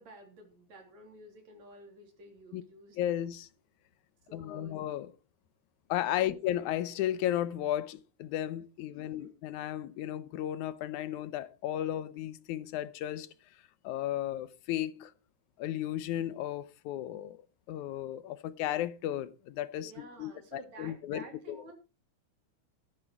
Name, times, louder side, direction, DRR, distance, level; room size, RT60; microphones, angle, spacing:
voice 1, 0.0-3.0 4.3-4.8 6.2-6.4 8.9-9.3 19.8-21.7, right 2 dB, 65° right, 4.6 m, -51 dB
voice 2, 3.0-3.5 4.3-5.1 5.9-13.3 13.8-15.1 15.6-17.4 17.7-21.6, left 12 dB, 85° left, 2.3 m, -34 dB
14.5 x 10.5 x 4.5 m
omnidirectional pair, 3.3 m